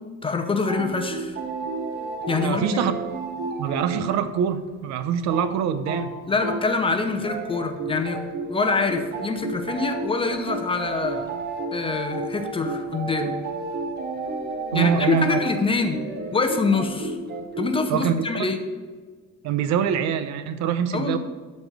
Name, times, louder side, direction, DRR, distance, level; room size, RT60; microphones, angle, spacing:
voice 1, 0.2-1.4 2.3-2.8 6.3-11.3 11.7-13.3 14.7-16.0 16.3-17.2 17.6-18.6 20.9-21.2, left 4 dB, 20° left, 6 dB, 0.7 m, -25 dB
sound 1, 0.7-4.1 4.3-4.4 4.7-4.8 5.1-5.5 5.8-6.1 6.4-6.8 7.2-17.8, right 3 dB, 35° right, 1.2 m, -31 dB
voice 2, 2.4-2.9 3.6-6.1 14.7-15.4 17.9-18.5 19.4-21.2, right 8 dB, 65° right, 10 dB, 0.8 m, -24 dB
12.0 x 4.3 x 6.6 m, 1.4 s
cardioid pair, 160°, 30 cm